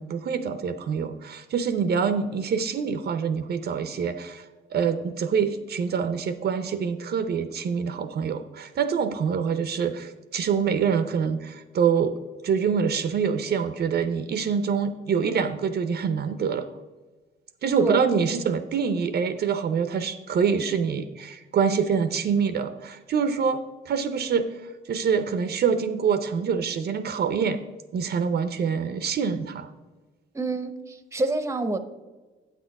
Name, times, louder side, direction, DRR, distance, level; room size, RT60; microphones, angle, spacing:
voice 1, 0.0-4.4 4.7-12.2 12.4-16.7 17.6-24.5 24.9-27.6 27.9-29.7, right 6 dB, 55° right, 10 dB, 0.6 m, -25 dB
voice 2, 30.3-31.8, right 2 dB, 15° right, 10 dB, 0.7 m, -27 dB
8.4 x 6.6 x 4.7 m, 1.3 s
cardioid pair, 90°, 20 cm